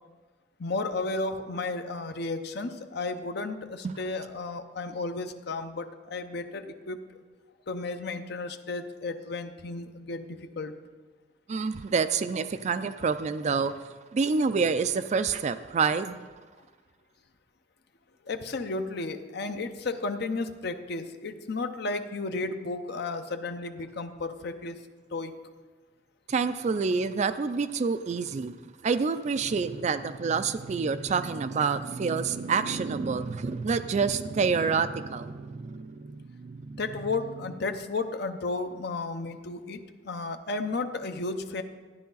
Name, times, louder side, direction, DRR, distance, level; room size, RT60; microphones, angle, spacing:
voice 1, 0.6-7.0 7.7-10.7 18.2-24.8 25.1-25.3 36.8-41.6, left 3 dB, 60° left, 7 dB, 0.7 m, -33 dB
voice 2, 11.5-13.8 14.1-16.3 26.3-28.5 28.8-36.8, right 5 dB, 40° right, 12 dB, 0.3 m, -28 dB
12.5 x 10.0 x 4.0 m, 1.4 s
head